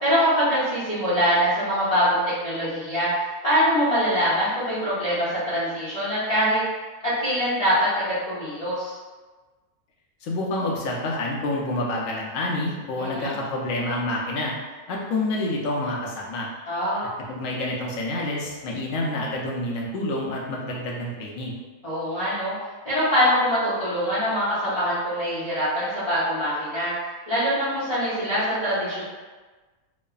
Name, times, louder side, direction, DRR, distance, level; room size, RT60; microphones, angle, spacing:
voice 1, 0.0-6.6 7.0-9.0 13.0-13.4 16.7-17.1 21.8-22.5 22.8-26.9 27.3-29.0, equal, 35° left, -12 dB, 0.6 m, -23 dB
voice 2, 10.2-14.5 14.9-16.5 17.3-21.5, left 1 dB, 70° left, -3 dB, 0.9 m, -28 dB
3.0 x 2.0 x 2.3 m, 1.3 s
omnidirectional pair, 1.6 m